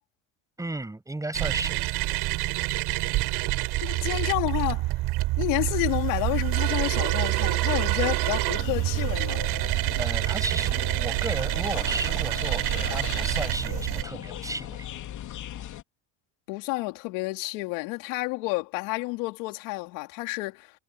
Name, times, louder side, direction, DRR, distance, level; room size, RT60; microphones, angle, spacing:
voice 1, 0.6-1.8 10.0-14.9, right 2 dB, 10° right, 7.0 m, -34 dB
sound 1, 1.3-14.0, right 19 dB, 65° right, 3.8 m, -27 dB
voice 2, 3.8-4.9 5.4-9.4 16.5-20.7, left 24 dB, 85° left, 3.6 m, -30 dB
sound 2, 8.5-15.8, left 12 dB, 45° left, 3.0 m, -38 dB
cardioid pair, 140°, 42 cm